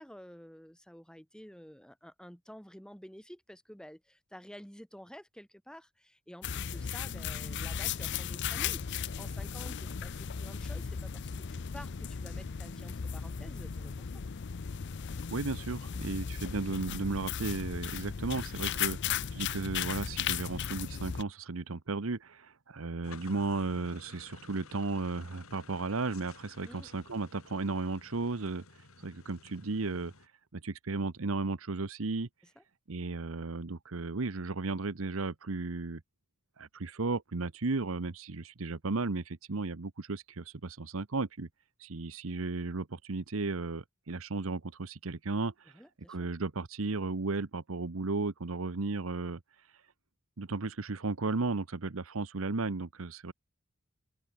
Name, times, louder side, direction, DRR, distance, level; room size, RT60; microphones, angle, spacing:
voice 1, 0.0-14.1 26.6-26.9 32.6-32.7 45.7-46.3, equal, 5° left, 7.8 m, -51 dB
sound 1, 6.4-21.2, left 7 dB, 55° left, 0.6 m, -36 dB
voice 2, 15.3-28.6 29.0-30.1 30.5-32.3 32.9-36.0 36.6-41.5 41.8-45.7 46.1-49.4 50.4-53.3, right 3 dB, 75° right, 1.0 m, -34 dB
sound 2, 23.0-30.3, left 3 dB, 85° left, 4.0 m, -54 dB
open air
head